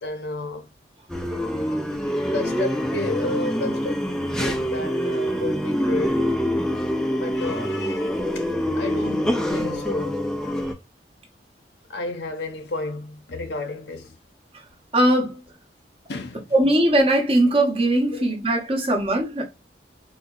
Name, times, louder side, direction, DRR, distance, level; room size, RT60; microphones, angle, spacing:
voice 1, 0.0-0.7 2.3-6.3 7.1-8.5 8.7-10.3 11.9-14.2 16.1-16.5, left 2 dB, 80° left, 0.7 m, -32 dB
sound 1, 1.1-10.7, equal, 5° left, 0.4 m, -25 dB
voice 2, 14.9-15.4 16.5-19.4, right 1 dB, 35° right, 0.9 m, -20 dB
3.9 x 2.8 x 2.4 m
head